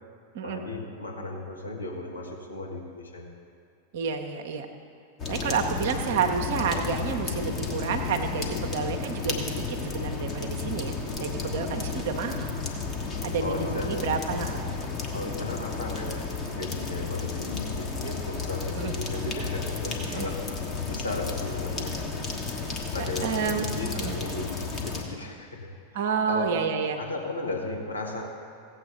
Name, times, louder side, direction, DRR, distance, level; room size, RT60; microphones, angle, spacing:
voice 1, 0.4-3.3 13.1-14.1 15.1-16.3 16.5-20.4 20.8-21.9 22.9-25.7 26.3-26.7 27.0-28.2, left 2 dB, 80° left, 0 dB, 1.3 m, -35 dB
voice 2, 3.9-4.7 5.3-12.6 13.2-14.6 18.8-18.9 20.1-20.3 23.2-23.6 24.0-24.1 25.9-27.0, right 6 dB, 55° right, 4 dB, 0.8 m, -30 dB
sound 1, 5.2-25.0, left 4 dB, 25° left, 1.4 m, -32 dB
16.0 x 8.0 x 4.0 m, 2.3 s
figure-of-eight pair, 90°, 0 cm